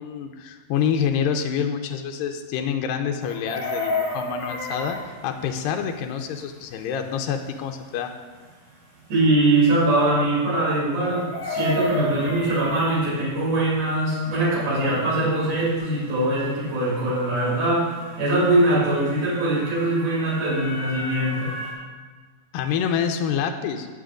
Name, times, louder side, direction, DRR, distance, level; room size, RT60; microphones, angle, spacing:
voice 1, 0.0-8.1 22.5-23.9, left 7 dB, 85° left, 4 dB, 2.4 m, -27 dB
Chicken rooster, 3.2-5.0 11.1-12.9 15.1-15.2 15.5-15.8, left 1 dB, 35° left, 4.3 m, -29 dB
sound 1, 3.8-21.7, left 1 dB, 50° right, 4.3 m, -43 dB
voice 2, 9.1-17.9 18.2-21.6, right 1 dB, 80° right, -8 dB, 4.9 m, -22 dB
19.5 x 7.6 x 2.5 m, 1.4 s
omnidirectional pair, 4.2 m